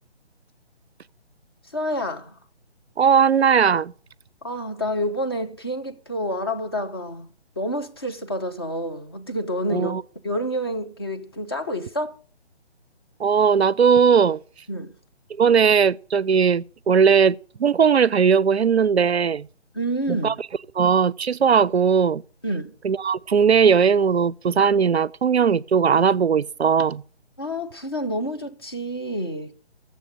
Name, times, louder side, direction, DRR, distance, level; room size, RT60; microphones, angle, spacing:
voice 1, 1.7-2.4 4.4-7.3 7.6-9.9 10.2-12.2 14.7-14.9 19.7-20.4 22.4-22.7 27.4-29.5, equal, 20° left, 0.7 m, -28 dB
voice 2, 3.0-3.9 9.7-10.0 13.2-14.4 15.3-19.5 20.1-20.3 20.8-22.2 22.8-27.0, right 6 dB, 70° right, 0.5 m, -18 dB
8.4 x 7.5 x 8.2 m
figure-of-eight pair, 150°, 34 cm